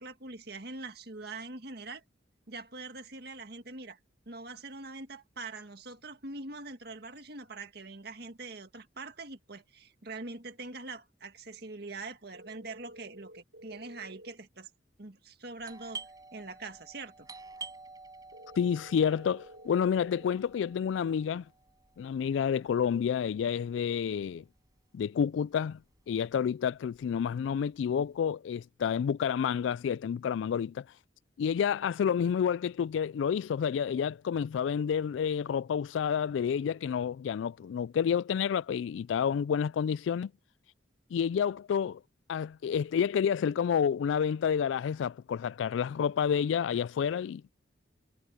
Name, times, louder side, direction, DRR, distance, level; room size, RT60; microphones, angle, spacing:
voice 1, 0.0-2.0 2.5-4.0 4.3-14.7 15.0-16.1 16.3-17.3, right 3 dB, 55° right, 1.9 m, -43 dB
sound 1, 12.3-14.3 18.3-20.3, right 1 dB, 80° right, 3.2 m, -51 dB
Doorbell, 15.6-25.0 25.3-25.4 26.0-26.3 26.7-28.0, right 4 dB, 20° right, 6.1 m, -49 dB
voice 2, 18.6-21.4 22.0-24.4 24.9-25.8 26.1-30.8 31.4-40.3 41.1-42.0 42.3-47.5, left 7 dB, 75° left, 0.3 m, -29 dB
head